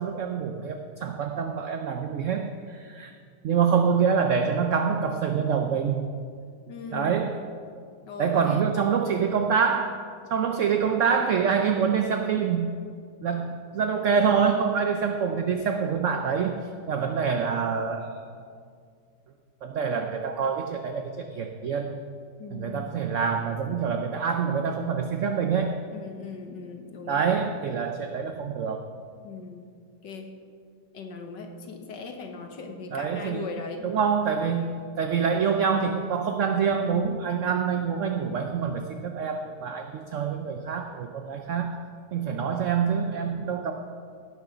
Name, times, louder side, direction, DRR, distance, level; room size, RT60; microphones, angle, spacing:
voice 1, 0.0-3.1 3.4-6.1 6.9-7.3 8.2-9.9 10.3-12.8 13.2-16.6 16.9-18.2 19.6-22.0 22.5-25.8 27.1-28.9 32.9-33.5 33.8-34.7 35.0-41.8 42.1-43.7, right 6 dB, 70° right, 5 dB, 0.7 m, -26 dB
voice 2, 6.7-7.2 8.1-8.6 22.4-22.9 25.9-27.5 29.2-29.7 30.0-30.3 30.9-33.9 34.6-34.7 37.5-37.7, left 4 dB, 75° left, 3 dB, 1.8 m, -39 dB
17.0 x 6.6 x 5.0 m, 2.2 s
omnidirectional pair, 2.0 m